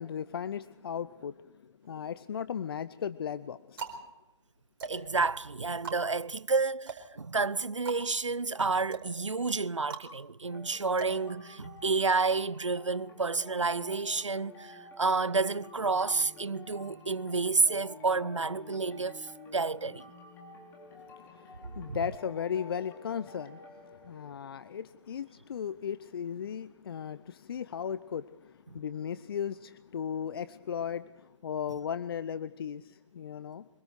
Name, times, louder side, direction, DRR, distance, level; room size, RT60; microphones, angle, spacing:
voice 1, 0.0-1.5 1.8-3.9 20.9-23.6 23.9-33.7, left 8 dB, 50° left, 0.6 m, -36 dB
sound 1, 1.8-2.5 3.2-12.0, right 5 dB, 50° right, 4.4 m, -44 dB
voice 2, 4.8-20.1 21.9-22.0, right 4 dB, 85° right, 0.6 m, -30 dB
sound 2, 10.4-24.9, left 2 dB, 15° left, 3.8 m, -50 dB
25.0 x 22.5 x 4.7 m
figure-of-eight pair, 135°, 15 cm